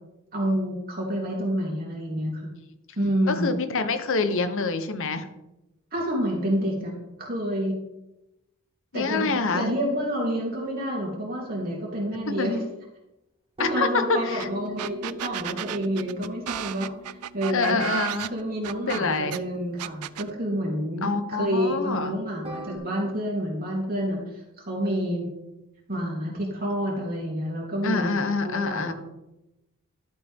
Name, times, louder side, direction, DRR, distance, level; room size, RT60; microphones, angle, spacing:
voice 1, 0.3-2.5 3.0-3.5 5.9-6.9 7.2-7.8 8.9-12.6 13.7-17.8 18.3-25.3 25.9-28.2 28.4-28.9, equal, 40° right, -3 dB, 3.4 m, -28 dB
voice 2, 2.1-2.4 3.3-5.3 8.9-9.7 12.4-12.5 13.6-14.5 17.5-18.3 18.8-19.4 21.0-22.2 27.8-28.9, left 4 dB, 60° left, 9 dB, 0.9 m, -26 dB
sound 1, 13.6-20.7 22.4-22.8, equal, 25° right, 1.5 m, -42 dB
sound 2, 14.4-14.5 14.8-19.4 19.8-20.3, right 12 dB, 85° right, 0.4 m, -33 dB
12.0 x 8.2 x 3.6 m, 0.93 s
head